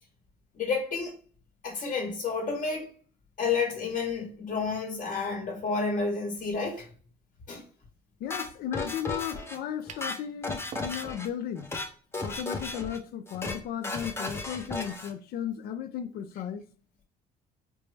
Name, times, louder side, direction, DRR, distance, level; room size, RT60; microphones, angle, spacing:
voice 1, 0.6-1.1 1.6-2.9 3.4-6.9 7.5-7.6, left 4 dB, 45° left, 1.0 m, -30 dB
voice 2, 8.2-11.7 12.2-16.6, left 9 dB, 65° left, 0.5 m, -35 dB
sound 1, 8.3-9.6 9.9-11.3 11.6-11.9 12.1-13.0 13.3-13.6 13.8-15.1, left 2 dB, 15° left, 0.6 m, -35 dB
sound 2, 9.9-10.1 10.7-11.2, right 6 dB, 45° right, 0.5 m, -43 dB
4.3 x 2.0 x 3.2 m
cardioid pair, 110°, 17 cm